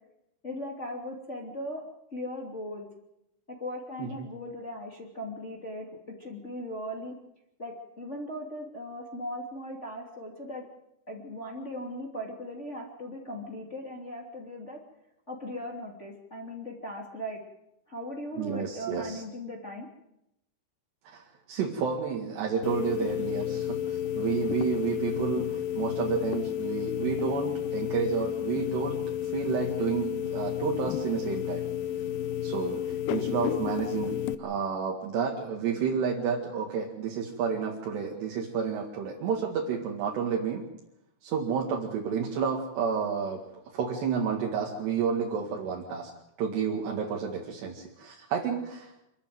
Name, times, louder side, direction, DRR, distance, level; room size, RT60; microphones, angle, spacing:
voice 1, 0.4-1.8 2.1-2.9 3.5-7.1 7.6-10.6 11.1-14.8 15.3-17.4 17.9-19.9, left 1 dB, 20° left, 0 dB, 2.5 m, -38 dB
voice 2, 18.4-19.2 21.1-31.6 32.4-40.6 41.2-43.4 43.7-46.1 46.4-48.9, right 6 dB, 75° right, -1 dB, 4.2 m, -31 dB
sound 1, 22.6-34.3, left 11 dB, 75° left, 2.0 m, -31 dB
26.0 x 13.5 x 9.5 m, 0.83 s
omnidirectional pair, 5.0 m